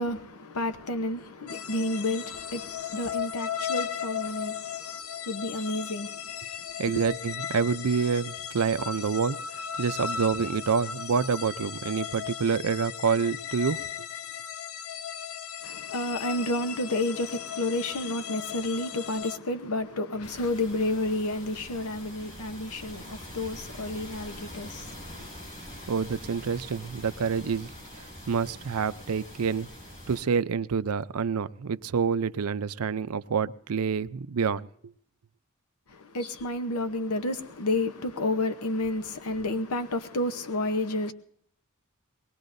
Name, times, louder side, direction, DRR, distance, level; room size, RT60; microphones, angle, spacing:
voice 1, 0.0-5.0 5.2-6.3 6.9-7.0 15.6-25.3 35.9-41.1, left 1 dB, 85° left, 0.9 m, -31 dB
sound 1, 1.5-19.4, left 8 dB, 70° left, 0.6 m, -36 dB
voice 2, 6.8-9.4 9.8-13.9 25.9-27.7 28.0-29.7 30.1-34.7, right 6 dB, 85° right, 0.5 m, -27 dB
sound 2, 20.2-30.2, equal, 35° left, 7.8 m, -44 dB
22.5 x 20.0 x 2.6 m
head